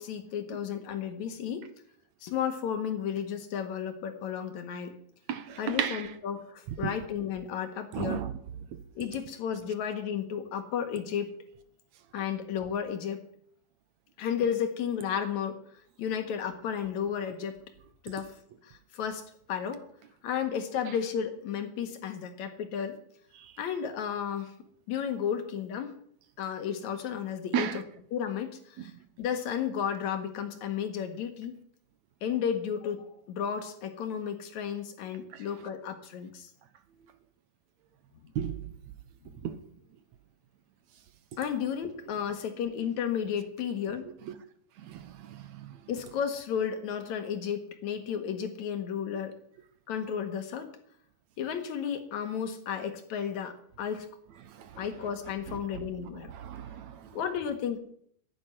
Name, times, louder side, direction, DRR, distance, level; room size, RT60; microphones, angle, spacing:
voice 1, 0.0-1.7 2.2-5.0 5.6-8.3 9.0-11.3 12.1-13.2 14.2-15.6 16.0-17.6 18.0-18.4 18.6-19.8 20.2-23.0 23.6-24.5 24.9-25.9 26.4-27.8 28.1-28.9 29.2-31.5 32.2-36.5 38.2-38.3 41.4-44.1 45.9-49.4 49.9-50.7 51.4-54.1 54.8-56.3 57.1-57.8, left 8 dB, 65° left, 2.9 m, -33 dB
voice 2, 5.3-6.0 6.8-6.9 7.9-8.3 27.5-27.8 38.4-38.6 39.4-39.6 44.9-45.0 45.3-45.7 54.6-54.7 56.3-57.1, right 9 dB, 65° right, 2.1 m, -33 dB
11.0 x 10.0 x 9.4 m
omnidirectional pair, 3.8 m